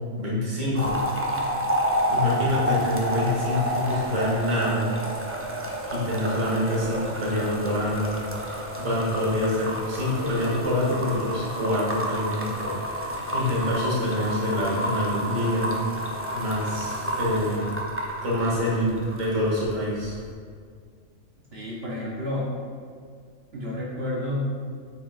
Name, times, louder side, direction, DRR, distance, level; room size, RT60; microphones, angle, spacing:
voice 1, 0.2-0.9 2.1-4.8 5.9-8.2 8.8-15.7 16.3-17.6 18.2-20.2, left 1 dB, 75° right, -7 dB, 2.0 m, -26 dB
sound 1, 0.7-19.7 20.0-20.3, equal, 20° right, 0.3 m, -30 dB
voice 2, 21.5-22.5 23.5-24.4, left 1 dB, 55° right, -5 dB, 1.0 m, -30 dB
8.7 x 4.7 x 2.5 m, 2.1 s
omnidirectional pair, 1.4 m